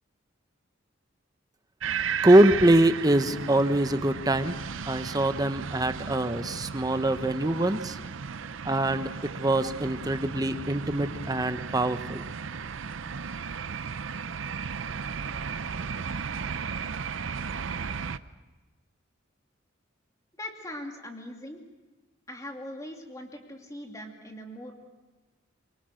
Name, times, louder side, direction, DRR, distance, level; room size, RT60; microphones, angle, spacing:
sound 1, 1.8-18.2, right 6 dB, 85° right, 0.6 m, -35 dB
voice 1, 2.2-4.5 4.9-8.0 8.6-12.2, right 1 dB, 20° right, 9 dB, 1.0 m, -23 dB
voice 2, 20.4-21.6 22.3-24.7, left 1 dB, 15° left, 2 dB, 2.6 m, -40 dB
24.5 x 23.0 x 6.4 m, 1.2 s
head